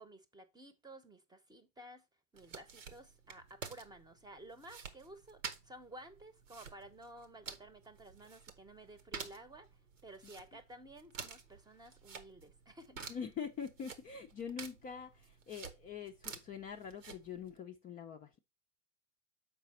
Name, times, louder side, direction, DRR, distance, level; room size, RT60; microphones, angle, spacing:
voice 1, 0.0-2.0 2.3-9.7 10.0-13.2, right 1 dB, 10° right, 0.9 m, -54 dB
sound 1, 2.3-17.6, right 5 dB, 80° right, 1.2 m, -51 dB
voice 2, 13.1-18.3, left 7 dB, 20° left, 0.5 m, -44 dB
6.8 x 4.8 x 4.2 m
figure-of-eight pair, 90°, 38 cm